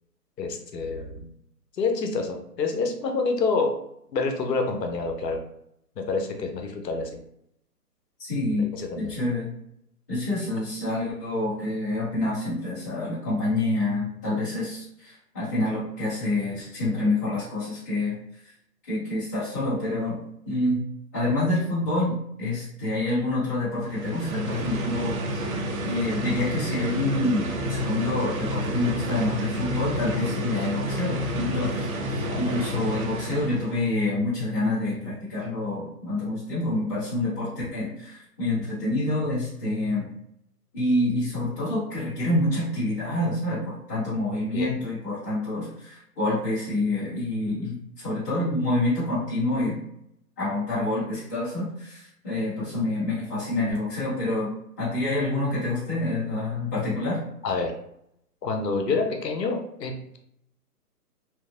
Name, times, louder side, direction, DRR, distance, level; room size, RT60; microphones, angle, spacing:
voice 1, 0.4-1.2 1.8-3.7 4.1-5.4 6.0-7.2 8.6-9.1 32.3-32.5 44.5-44.7 57.4-57.7 58.4-60.2, left 4 dB, 90° left, 4 dB, 0.7 m, -27 dB
voice 2, 8.2-8.7 8.9-9.5 10.1-18.1 18.9-20.2 20.4-20.8 21.1-25.4 25.8-40.0 40.7-49.8 50.4-54.5 54.8-57.2, left 2 dB, 10° left, -13 dB, 0.6 m, -27 dB
sound 1, 23.8-33.8, equal, 60° right, 0.6 m, -30 dB
2.8 x 2.5 x 2.3 m, 0.74 s
hypercardioid pair, 155°, 48 cm